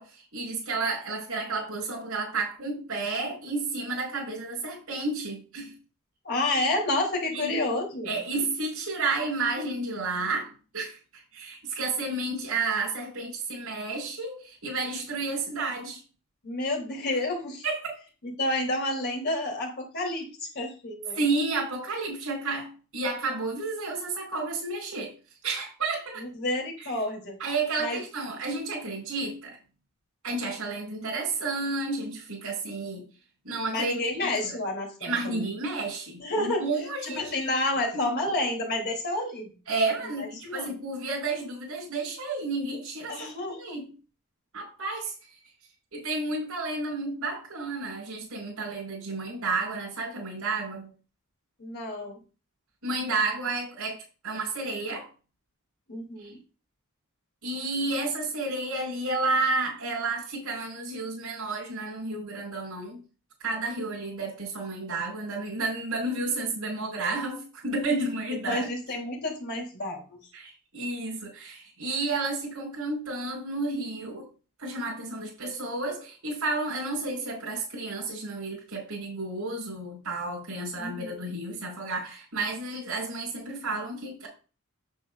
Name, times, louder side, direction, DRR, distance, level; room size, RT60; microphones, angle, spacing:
voice 1, 0.0-5.7 7.3-7.6 8.0-16.0 17.6-18.0 21.1-25.1 25.4-26.3 26.8-27.0 27.4-29.6 30.2-33.0 33.4-34.0 34.4-34.6 35.0-37.5 37.9-38.0 39.7-43.3 43.6-43.9 44.5-45.3 45.9-50.9 52.8-55.1 56.2-56.3 57.4-63.0 63.4-68.7 70.3-74.3 74.6-84.3, right 3 dB, 80° right, -2 dB, 5.3 m, -31 dB
voice 2, 6.2-8.1 16.4-17.6 18.2-20.3 20.5-21.2 26.2-27.4 27.8-28.0 33.7-35.5 36.2-36.7 37.1-39.5 40.4-40.7 43.1-43.8 51.6-52.2 55.9-56.4 68.4-70.2 80.8-81.2, left 2 dB, 55° left, 1 dB, 3.4 m, -30 dB
9.2 x 8.5 x 2.6 m, 0.34 s
head